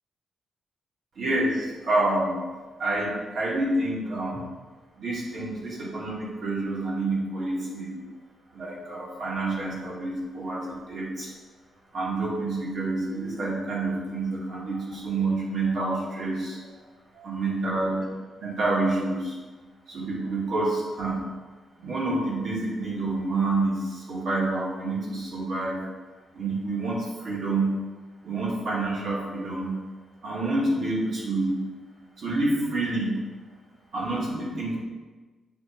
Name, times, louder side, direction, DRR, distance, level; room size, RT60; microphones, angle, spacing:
voice 1, 1.2-2.4 2.8-4.5 5.0-8.0 8.5-11.3 11.9-16.6 17.2-18.0 18.4-19.3 19.9-21.2 21.8-25.8 26.3-27.7 28.2-29.8 30.2-31.6 32.2-33.2 33.9-34.8, right 2 dB, 45° right, -4 dB, 2.1 m, -28 dB
7.1 x 4.8 x 4.4 m, 1.3 s
wide cardioid pair, 170°, 0 cm